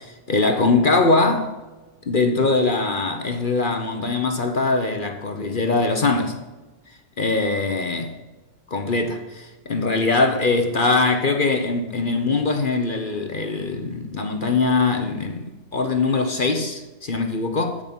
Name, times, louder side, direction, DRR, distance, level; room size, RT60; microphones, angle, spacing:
voice 1, 0.0-1.5 2.1-6.4 7.2-8.2 8.7-15.5 15.7-17.8, left 3 dB, 40° left, 0.8 m, -22 dB
14.5 x 6.6 x 5.4 m
omnidirectional pair, 1.9 m